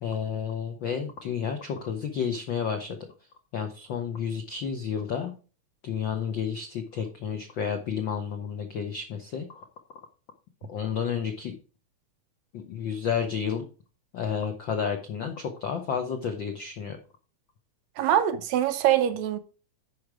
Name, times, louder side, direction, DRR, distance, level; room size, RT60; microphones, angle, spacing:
voice 1, 0.0-3.0 3.5-5.3 5.8-9.6 10.7-11.5 12.5-13.6 14.1-17.0, left 7 dB, 80° left, 1.0 m, -31 dB
voice 2, 18.0-19.4, right 11 dB, 75° right, 1.9 m, -23 dB
10.0 x 5.0 x 4.7 m
omnidirectional pair, 3.4 m